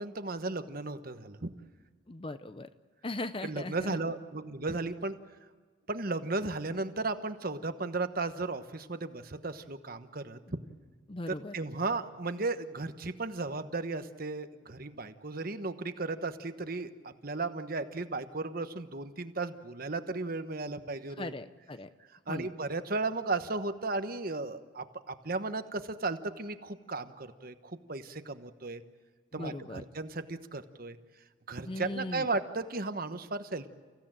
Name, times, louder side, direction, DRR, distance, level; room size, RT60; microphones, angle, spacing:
voice 1, 0.0-1.5 3.4-5.2 5.9-10.4 11.3-21.3 22.3-28.8 29.3-31.0 31.5-33.7, right 3 dB, 45° right, 9 dB, 1.2 m, -35 dB
voice 2, 2.1-2.7 3.0-4.0 11.1-11.6 21.2-21.9 22.3-22.5 29.3-29.8 31.7-32.3, left 2 dB, 25° left, 11 dB, 0.6 m, -38 dB
29.5 x 16.0 x 9.0 m, 1.5 s
head